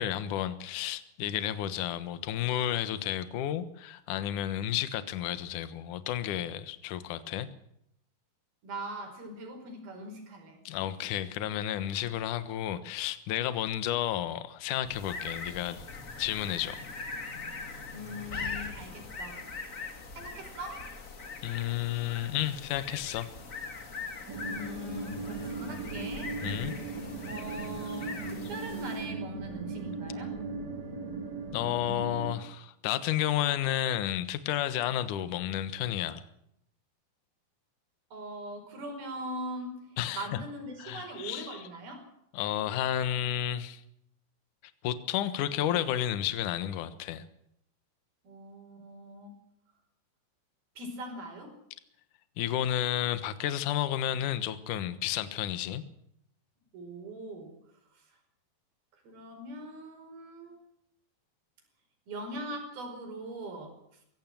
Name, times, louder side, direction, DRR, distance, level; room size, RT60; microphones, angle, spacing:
voice 1, 0.0-7.5 10.7-15.8 16.2-16.8 21.4-23.3 26.4-26.7 31.5-36.2 40.0-40.4 40.8-41.6 42.3-43.8 44.8-47.3 52.4-55.8, left 11 dB, 65° left, 13 dB, 2.5 m, -31 dB
voice 2, 8.6-10.6 17.9-19.5 20.1-20.9 24.5-26.4 27.3-30.4 38.1-42.1 48.2-49.4 50.8-51.6 56.7-57.6 57.9-58.0 58.9-60.6 62.1-63.8, right 1 dB, 70° right, 5 dB, 6.8 m, -41 dB
sound 1, 14.8-29.2, left 4 dB, 35° left, 1.4 m, -41 dB
sound 2, 24.3-32.4, right 3 dB, 30° right, 2.6 m, -38 dB
23.0 x 16.0 x 7.7 m, 0.73 s
omnidirectional pair, 4.5 m